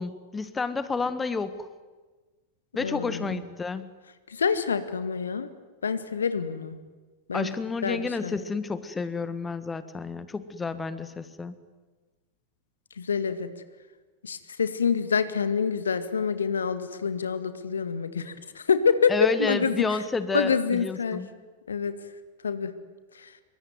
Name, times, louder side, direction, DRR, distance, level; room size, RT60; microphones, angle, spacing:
voice 1, 0.0-1.7 2.7-3.9 7.3-11.5 19.1-21.3, left 4 dB, 15° left, 13 dB, 1.5 m, -30 dB
voice 2, 2.8-3.4 4.3-5.5 5.8-6.8 7.3-7.5 7.8-8.4 13.0-13.5 14.2-19.1 19.4-19.7 20.3-21.2 21.7-22.0 22.4-22.7 23.2-23.3, left 6 dB, 70° left, 11 dB, 1.9 m, -27 dB
26.0 x 23.5 x 9.5 m, 1.3 s
figure-of-eight pair, 90°, 0 cm